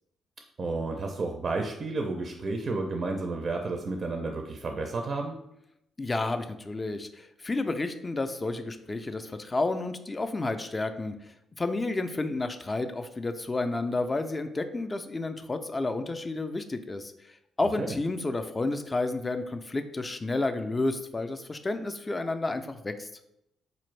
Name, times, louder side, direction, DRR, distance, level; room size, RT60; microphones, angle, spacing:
voice 1, 0.6-5.4 17.8-18.0, right 3 dB, 45° right, 3 dB, 0.4 m, -31 dB
voice 2, 6.0-11.1 11.6-23.1, left 2 dB, 25° left, 8 dB, 0.3 m, -31 dB
4.0 x 2.5 x 3.1 m, 0.80 s
cardioid pair, 90°, 0 cm